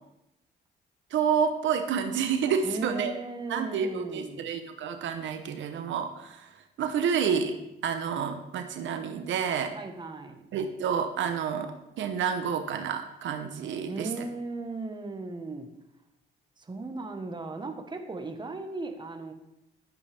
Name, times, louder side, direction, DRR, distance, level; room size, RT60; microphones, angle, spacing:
voice 1, 1.1-3.1 3.5-6.5 6.8-7.6 7.8-9.7 10.5-14.1, right 7 dB, 70° right, 7 dB, 0.9 m, -29 dB
voice 2, 2.6-4.5 9.7-10.4 13.9-15.7 16.6-19.3, right 3 dB, 20° right, 5 dB, 1.2 m, -37 dB
11.5 x 8.2 x 3.4 m, 0.87 s
cardioid pair, 90°, 20 cm